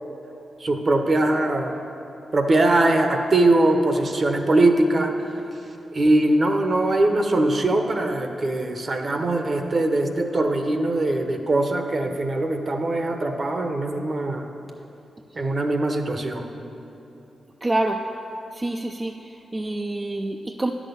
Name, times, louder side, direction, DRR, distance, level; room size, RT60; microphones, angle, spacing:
voice 1, 0.6-1.7 2.3-5.1 5.9-14.5 15.3-16.4, right 2 dB, 45° right, 5 dB, 0.9 m, -21 dB
voice 2, 17.6-18.0 18.5-20.7, right 2 dB, 25° right, 3 dB, 0.5 m, -27 dB
9.8 x 6.2 x 6.9 m, 3.0 s
cardioid pair, 60°, 0 cm